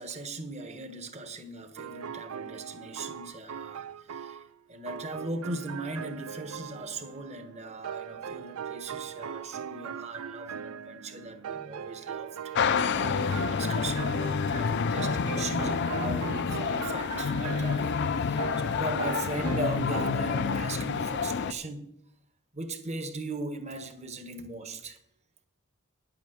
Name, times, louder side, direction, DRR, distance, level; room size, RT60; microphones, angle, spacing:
voice 1, 0.0-4.4 4.7-21.9 22.5-25.0, right 2 dB, 30° right, 1.2 m, -39 dB
sound 1, 1.8-4.5 4.9-20.1, right 8 dB, 75° right, 0.4 m, -40 dB
sound 2, 12.5-21.5, left 5 dB, 50° left, 0.4 m, -28 dB
10.5 x 8.4 x 6.5 m
head